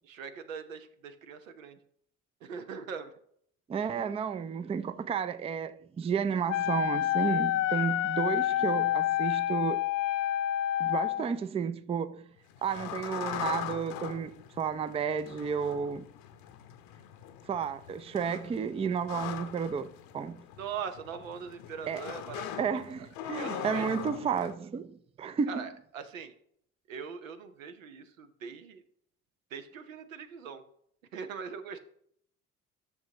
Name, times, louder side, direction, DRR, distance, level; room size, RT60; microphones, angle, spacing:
voice 1, 0.0-1.8 2.4-3.1 20.6-22.8 23.3-24.0 25.5-26.3 26.9-28.8 29.5-30.6 31.1-31.8, right 6 dB, 80° right, 0.7 m, -41 dB
voice 2, 3.7-9.8 10.8-12.2 12.6-16.1 17.5-20.4 21.9-22.0 22.6-25.6, right 7 dB, 15° right, 0.4 m, -32 dB
Wind instrument woodwind instrument, 6.5-11.3, left 13 dB, 45° left, 0.5 m, -28 dB
sound 1, 12.4-24.5, left 10 dB, 60° left, 0.8 m, -41 dB
13.0 x 6.7 x 2.9 m
figure-of-eight pair, 45°, 39 cm